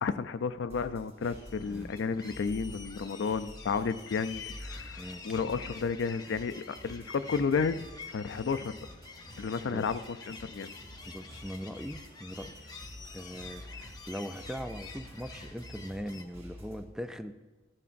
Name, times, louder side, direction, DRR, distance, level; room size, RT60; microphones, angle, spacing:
voice 1, 0.0-7.8 8.1-8.8 9.4-10.7, left 5 dB, 65° left, 11 dB, 0.4 m, -32 dB
sound 1, 0.7-16.8, equal, 30° right, 3.4 m, -49 dB
sound 2, 1.3-16.2, left 4 dB, 20° left, 0.7 m, -48 dB
voice 2, 1.6-1.9 5.0-5.2 9.6-9.9 11.1-12.7 13.1-17.4, equal, 5° right, 9 dB, 0.3 m, -41 dB
14.0 x 11.0 x 2.6 m, 1.2 s
head